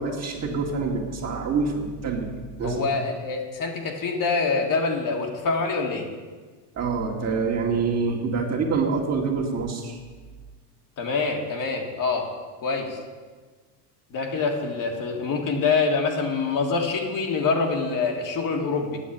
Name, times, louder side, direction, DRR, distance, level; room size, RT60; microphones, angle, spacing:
voice 1, 0.0-2.3 2.6-2.8 6.8-10.0, right 4 dB, 30° right, -1 dB, 2.2 m, -26 dB
voice 2, 2.6-6.1 11.0-12.3 12.6-13.0 14.1-19.0, left 4 dB, 40° left, 2 dB, 1.8 m, -25 dB
8.6 x 7.1 x 8.6 m, 1.4 s
supercardioid pair, 110°, 48 cm